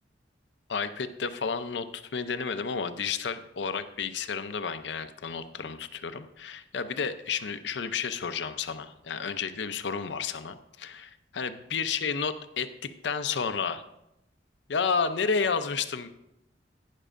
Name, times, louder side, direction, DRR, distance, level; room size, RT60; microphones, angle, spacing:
voice 1, 0.7-13.8 14.7-16.1, left 5 dB, 80° left, 10 dB, 0.6 m, -31 dB
11.5 x 9.8 x 2.5 m, 0.86 s
head